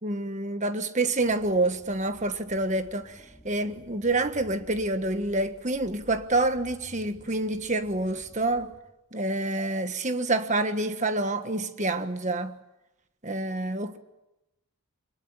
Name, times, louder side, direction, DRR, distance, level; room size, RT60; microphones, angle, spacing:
voice 1, 0.0-8.7 9.1-12.6 13.2-14.0, right 2 dB, 35° right, 1.5 m, -27 dB
sound 1, 1.2-8.8, equal, 15° left, 3.3 m, -53 dB
25.5 x 21.5 x 8.8 m
head